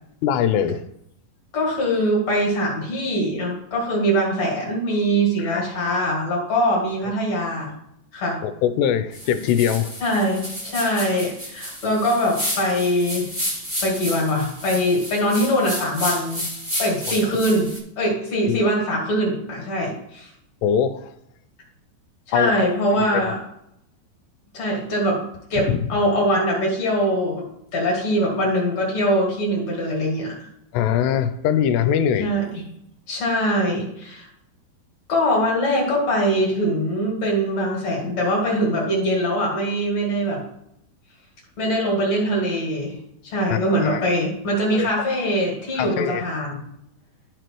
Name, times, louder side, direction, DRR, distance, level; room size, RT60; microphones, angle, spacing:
voice 1, 0.2-0.8 5.4-5.6 8.4-9.9 17.1-17.2 18.5-18.6 20.6-21.1 22.3-22.7 23.0-23.3 25.7-25.9 30.7-32.3 43.5-44.0 44.7-44.9 45.8-46.2, left 9 dB, 85° left, 2.6 m, -22 dB
voice 2, 1.5-7.7 8.1-8.4 10.0-13.3 13.8-16.4 16.8-17.7 18.0-20.3 22.3-23.4 24.5-25.2 25.5-27.4 27.7-30.5 32.2-32.7 33.1-34.3 35.1-40.4 41.6-43.0 43.2-46.6, equal, 50° left, 2.5 m, -22 dB
sound 1, 9.1-17.8, equal, 40° right, 0.6 m, -31 dB
13.0 x 4.9 x 3.0 m
omnidirectional pair, 5.0 m